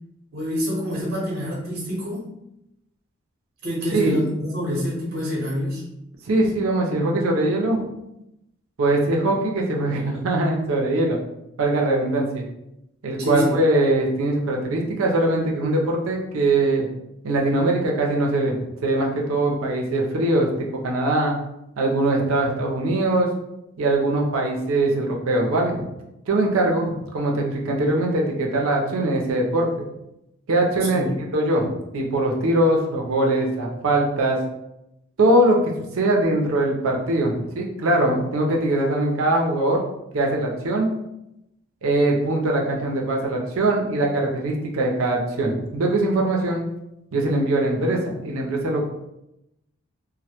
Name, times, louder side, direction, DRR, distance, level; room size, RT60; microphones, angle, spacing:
voice 1, 0.3-2.3 3.6-5.8 13.2-13.6 30.9-31.2, left 1 dB, 55° right, -4 dB, 0.8 m, -26 dB
voice 2, 6.3-7.8 8.8-11.2 11.6-12.4 13.0-16.9 17.2-20.5 20.8-21.3 21.8-23.3 23.8-25.8 26.3-29.7 30.5-34.4 35.2-39.8 40.1-40.9 41.8-46.6 47.1-48.8, right 2 dB, 80° right, 0 dB, 0.5 m, -22 dB
2.1 x 2.1 x 2.8 m, 0.87 s
head